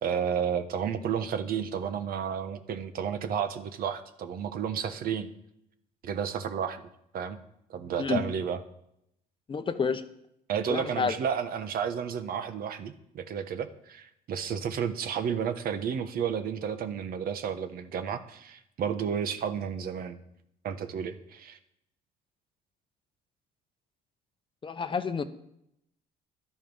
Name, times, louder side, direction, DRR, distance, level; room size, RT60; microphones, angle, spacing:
voice 1, 0.0-5.3 6.0-6.9 7.1-7.4 7.7-8.6 10.5-20.2 20.6-21.6, right 7 dB, 60° right, 9 dB, 1.1 m, -32 dB
voice 2, 9.5-10.0 10.7-11.1 24.6-25.2, left 5 dB, 30° left, 10 dB, 0.9 m, -29 dB
12.0 x 10.0 x 5.5 m, 0.77 s
cardioid pair, 110°, 17 cm